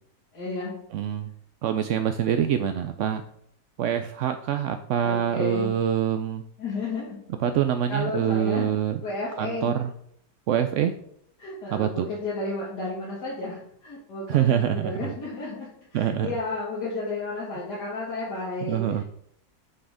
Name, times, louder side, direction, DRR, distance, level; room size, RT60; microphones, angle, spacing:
voice 1, 0.3-0.7 5.0-5.7 6.6-7.2 7.9-8.7 9.0-9.8 11.4-19.0, left 2 dB, 80° left, -8 dB, 3.0 m, -32 dB
voice 2, 0.9-1.3 1.6-3.2 3.8-6.4 7.4-9.0 9.4-9.9 10.5-10.9 11.7-12.1 14.3-15.1 15.9-16.3 18.6-19.0, right 9 dB, 70° right, 8 dB, 0.7 m, -25 dB
7.8 x 6.2 x 4.9 m, 0.69 s
omnidirectional pair, 1.7 m